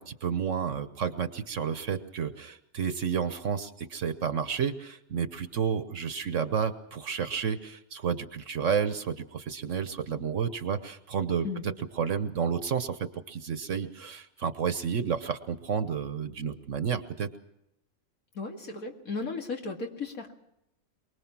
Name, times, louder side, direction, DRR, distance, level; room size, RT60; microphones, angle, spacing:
voice 1, 0.0-17.3, right 7 dB, 65° right, 11 dB, 1.3 m, -31 dB
voice 2, 18.3-20.3, left 4 dB, 85° left, 3 dB, 2.6 m, -35 dB
23.5 x 20.0 x 6.0 m, 0.83 s
omnidirectional pair, 1.4 m